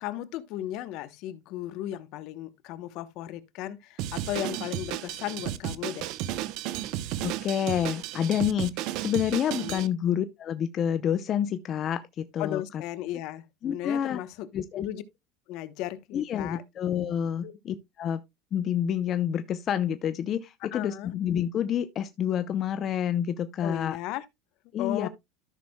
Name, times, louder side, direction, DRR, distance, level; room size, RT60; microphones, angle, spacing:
voice 1, 0.0-6.1 9.6-9.9 12.4-14.5 14.8-15.0 15.5-16.6 17.4-17.5 20.6-21.1 23.6-24.2 24.8-25.1, left 13 dB, 60° left, 0.9 m, -35 dB
Drum kit, 4.0-9.9, right 13 dB, 60° right, 0.7 m, -33 dB
voice 2, 7.2-12.8 13.6-14.2 14.5-14.9 16.1-18.2 18.5-24.0 24.7-25.1, left 9 dB, 40° left, 0.6 m, -28 dB
13.5 x 6.2 x 2.2 m
supercardioid pair, 115°, 0 cm